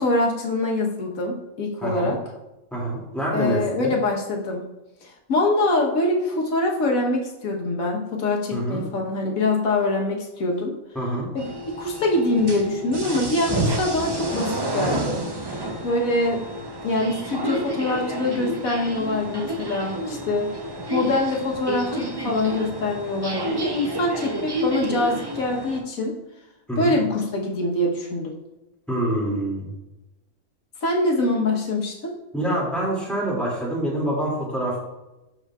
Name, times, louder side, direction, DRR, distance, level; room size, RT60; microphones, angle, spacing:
voice 1, 0.0-2.2 3.3-4.6 5.0-10.7 11.3-11.4 11.8-15.2 15.8-16.4 16.8-20.5 20.9-26.1 26.8-28.3 30.8-32.1, left 2 dB, 70° left, 0 dB, 1.5 m, -24 dB
voice 2, 1.8-2.2 2.7-3.9 8.5-8.8 10.9-11.3 26.7-27.0 28.9-29.7 32.3-34.8, right 1 dB, ahead, -6 dB, 2.3 m, -26 dB
sound 1, 11.4-25.8, right 1 dB, 30° right, 0.4 m, -30 dB
12.0 x 4.5 x 2.4 m, 0.99 s
omnidirectional pair, 1.5 m